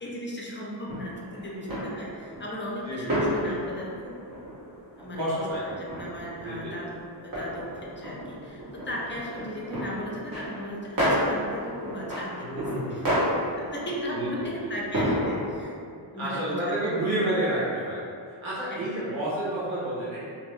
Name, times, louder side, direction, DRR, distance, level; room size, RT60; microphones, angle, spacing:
voice 1, 0.0-4.2 5.0-12.5 12.7-13.3 13.6-17.2 18.7-18.9, equal, 25° left, -4 dB, 0.5 m, -37 dB
sound 1, 0.9-15.7, equal, 50° right, 1.2 m, -32 dB
voice 2, 2.8-3.5 5.1-5.6 6.4-6.7 12.4-13.2 14.1-14.5 16.2-18.0 18.3-20.2, right 1 dB, 85° right, -10 dB, 1.1 m, -30 dB
2.7 x 2.1 x 3.2 m, 2.3 s
cardioid pair, 75°, 47 cm